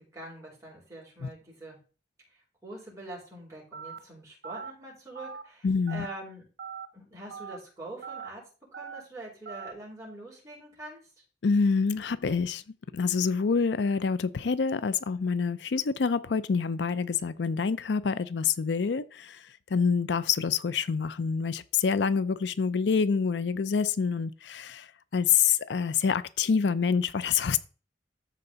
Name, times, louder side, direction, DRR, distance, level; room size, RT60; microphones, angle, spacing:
voice 1, 0.1-1.8 2.3-6.4 6.9-11.0, right 1 dB, 20° right, 4.7 m, -44 dB
Telephone, 3.7-4.0 4.4-4.7 5.2-5.4 5.9-6.1 6.6-6.9 7.3-7.6 8.0-8.3 8.7-9.0 9.5-9.7, right 6 dB, 65° right, 1.4 m, -40 dB
voice 2, 5.6-6.1 11.4-12.6 12.9-24.9 25.1-27.6, left 5 dB, 80° left, 0.5 m, -27 dB
13.5 x 4.5 x 3.9 m
head